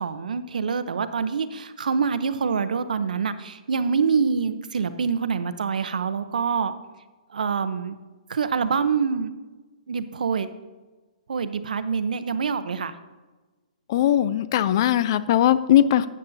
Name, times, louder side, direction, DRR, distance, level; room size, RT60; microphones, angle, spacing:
voice 1, 0.0-6.7 7.3-8.0 8.3-9.3 9.9-10.5 11.3-12.9, right 5 dB, 80° right, 11 dB, 0.7 m, -25 dB
voice 2, 13.9-16.1, left 11 dB, 35° left, 16 dB, 0.3 m, -19 dB
12.5 x 8.5 x 2.7 m, 1.2 s
hypercardioid pair, 165°, 4 cm